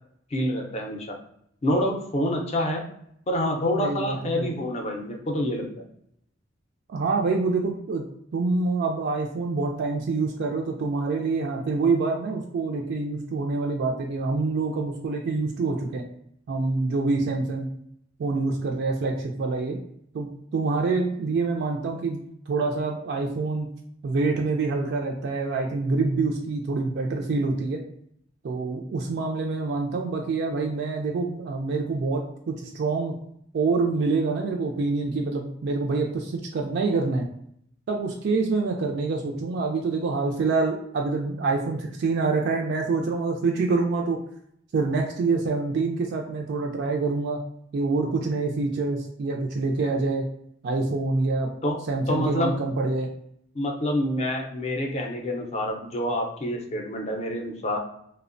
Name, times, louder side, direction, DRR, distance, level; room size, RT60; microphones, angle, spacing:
voice 1, 0.3-1.2 1.6-2.8 3.3-5.7 51.6-51.8 52.1-52.6 53.5-57.8, left 1 dB, 35° left, 2 dB, 0.5 m, -27 dB
voice 2, 3.8-4.5 6.9-8.0 8.3-16.0 16.5-17.7 18.2-19.8 20.1-22.2 22.5-23.7 24.0-27.8 28.4-33.2 33.5-37.3 37.9-44.2 44.7-47.4 47.7-50.2 50.6-51.5 51.9-53.1, right 3 dB, 60° right, 1 dB, 0.3 m, -26 dB
2.8 x 2.0 x 2.5 m, 0.70 s
head